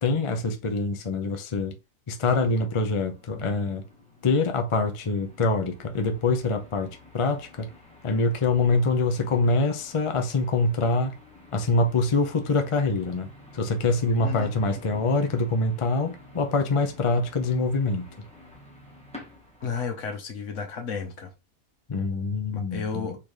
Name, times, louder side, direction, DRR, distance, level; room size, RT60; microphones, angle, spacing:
voice 1, 0.0-1.8 2.1-3.8 4.2-7.7 8.0-11.1 11.5-13.3 13.5-18.1 21.9-23.2, left 3 dB, 35° left, 0.5 m, -25 dB
sound 1, 2.2-19.8, left 2 dB, 5° left, 1.3 m, -50 dB
voice 2, 14.2-14.5 19.6-21.3 22.5-23.2, left 5 dB, 60° left, 1.4 m, -32 dB
4.1 x 3.7 x 3.2 m
omnidirectional pair, 1.5 m